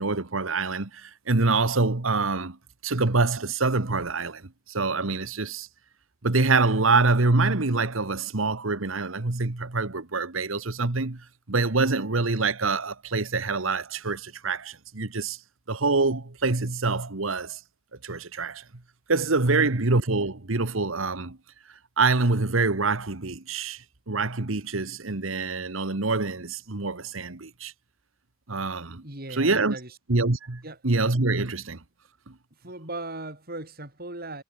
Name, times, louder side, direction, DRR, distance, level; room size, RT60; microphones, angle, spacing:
voice 1, 0.0-2.6 2.8-4.4 4.7-5.7 6.2-15.4 15.7-17.6 18.0-18.6 19.1-21.4 22.0-27.7 28.5-29.0 29.3-29.8 30.1-31.8 32.3-32.4, right 3 dB, 80° right, 1.5 m, -25 dB
voice 2, 29.0-30.0 30.6-30.8 32.6-34.4, right 2 dB, 50° right, 5.8 m, -38 dB
head